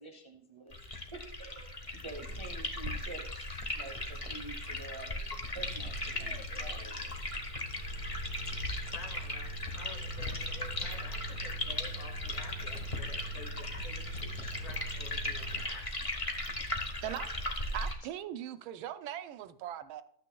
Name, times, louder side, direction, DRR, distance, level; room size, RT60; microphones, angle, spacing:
voice 1, 0.0-0.7 1.1-5.2 5.5-7.1, right 2 dB, 50° right, 0.3 m, -48 dB
sound 1, 0.7-17.9, left 1 dB, 40° left, 0.4 m, -38 dB
sound 2, 5.6-15.6, right 2 dB, 70° left, 1.9 m, -44 dB
voice 2, 8.9-15.9 17.0-17.2, left 3 dB, 90° left, 2.7 m, -50 dB
voice 3, 17.7-20.0, right 11 dB, 80° right, 1.4 m, -39 dB
13.0 x 8.9 x 2.3 m
omnidirectional pair, 2.2 m